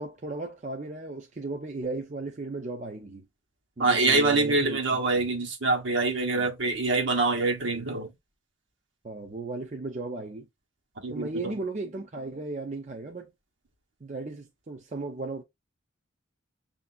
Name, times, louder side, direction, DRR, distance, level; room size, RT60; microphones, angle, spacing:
voice 1, 0.0-3.2 3.8-5.0 6.3-6.5 9.0-10.5 11.1-13.3 14.0-15.4, right 3 dB, 40° right, 0.6 m, -35 dB
voice 2, 3.8-8.1 11.0-11.5, right 3 dB, 70° right, 1.4 m, -25 dB
6.8 x 2.8 x 2.3 m
head